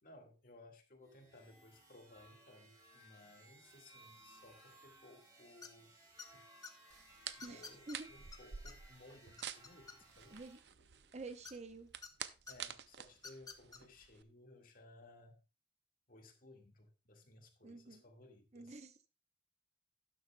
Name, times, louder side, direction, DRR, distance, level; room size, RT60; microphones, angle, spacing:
voice 1, 0.0-5.9 6.3-6.5 7.4-10.4 10.7-11.1 12.5-15.4 16.1-18.8, left 2 dB, 55° left, 3 dB, 1.9 m, -60 dB
sound 1, 1.0-10.6, right 1 dB, 20° right, 3.4 m, -62 dB
sound 2, 5.6-5.9 6.2-6.7 7.4-8.0 8.3-8.4 8.7-8.8 9.1-10.3 11.4-12.1 12.5-12.6 13.2-13.8, left 5 dB, 20° left, 0.8 m, -51 dB
sound 3, 6.9-14.2, right 9 dB, 70° right, 0.6 m, -50 dB
voice 2, 7.4-8.1 10.3-10.6 11.1-11.9 17.6-18.0 18.5-19.1, right 3 dB, 40° right, 9 dB, 0.8 m, -49 dB
12.0 x 10.5 x 2.3 m, 0.30 s
head